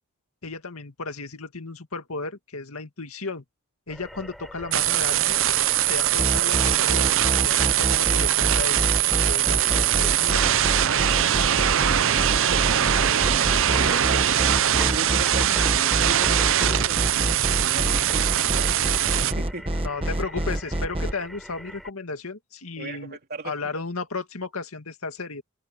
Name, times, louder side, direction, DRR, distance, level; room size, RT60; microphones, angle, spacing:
voice 1, 0.4-3.4 3.9-5.4 5.8-7.1 7.4-10.4 19.8-23.2 23.4-25.4, left 3 dB, 75° left, 2.2 m, -34 dB
sound 1, 3.9-21.9, equal, ahead, 6.5 m, -41 dB
sound 2, 4.7-19.3, right 11 dB, 60° right, 0.7 m, -22 dB
sound 3, 6.2-21.1, right 1 dB, 25° right, 1.5 m, -26 dB
voice 2, 11.5-19.7 22.8-23.8, right 2 dB, 45° right, 3.0 m, -38 dB
head